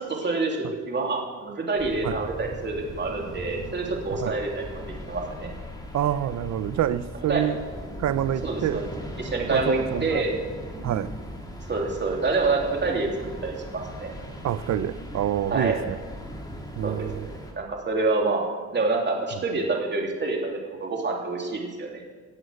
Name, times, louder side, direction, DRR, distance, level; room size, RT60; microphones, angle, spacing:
voice 1, 0.0-5.5 7.3-7.4 8.4-8.9 9.2-10.3 11.7-14.1 15.5-15.8 16.8-17.1 17.5-18.4 18.7-22.0, right 3 dB, 35° right, 0 dB, 3.3 m, -27 dB
sound 1, 1.8-17.5, equal, 15° left, 2.6 m, -39 dB
voice 2, 5.9-7.6 8.0-8.8 9.5-10.2 10.8-11.1 14.4-15.9 16.8-17.3, right 11 dB, 65° right, 15 dB, 0.7 m, -27 dB
17.5 x 7.9 x 6.5 m, 1.5 s
cardioid pair, 90°, 30 cm